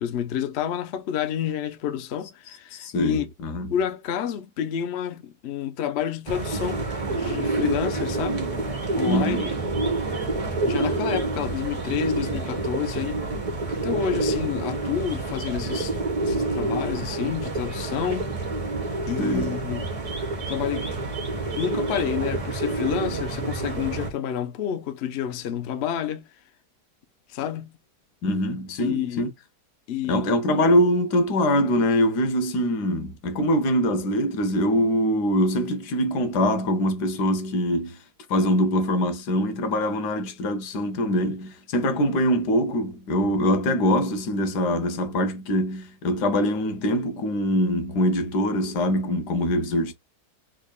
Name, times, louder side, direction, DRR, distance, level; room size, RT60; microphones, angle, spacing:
voice 1, 0.0-3.3 3.7-8.5 8.9-9.5 10.3-10.4 10.6-13.2 13.8-15.9 16.2-18.3 19.1-19.9 20.5-20.9 21.6-26.2 27.3-27.7 28.8-29.3 29.9-30.2, left 9 dB, 60° left, 0.6 m, -29 dB
voice 2, 2.7-3.7 9.1-9.5 19.2-19.6 28.2-29.3 30.0-38.0 38.3-49.9, equal, 80° left, 1.4 m, -23 dB
sound 1, 6.3-24.1, right 3 dB, 25° right, 1.2 m, -28 dB
3.6 x 3.4 x 2.3 m
omnidirectional pair, 1.7 m